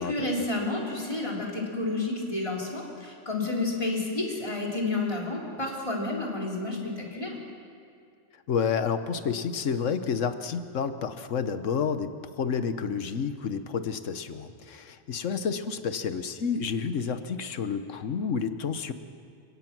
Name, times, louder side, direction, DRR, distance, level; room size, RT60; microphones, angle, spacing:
voice 1, 0.0-7.4, left 2 dB, 25° left, -2 dB, 3.7 m, -30 dB
voice 2, 8.5-18.9, left 6 dB, 80° left, 10 dB, 1.4 m, -30 dB
30.0 x 17.0 x 6.1 m, 2.4 s
omnidirectional pair, 1.3 m